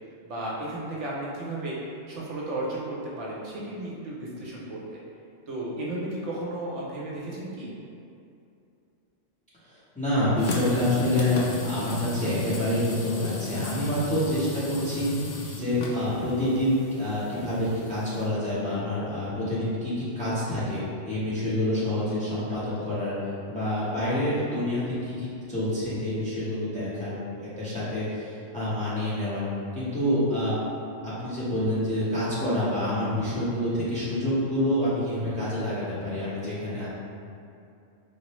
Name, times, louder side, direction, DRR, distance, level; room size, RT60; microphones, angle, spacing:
voice 1, 0.2-1.8 2.1-4.8 5.5-7.7 16.2-16.3, right 1 dB, 70° right, -5 dB, 1.0 m, -34 dB
voice 2, 9.6-29.4 29.7-30.6 31.0-36.9, left 1 dB, 5° left, -11 dB, 0.8 m, -27 dB
sound 1, 10.4-18.3, left 1 dB, 65° left, 0.5 m, -36 dB
4.5 x 2.0 x 3.0 m, 2.6 s
omnidirectional pair, 1.3 m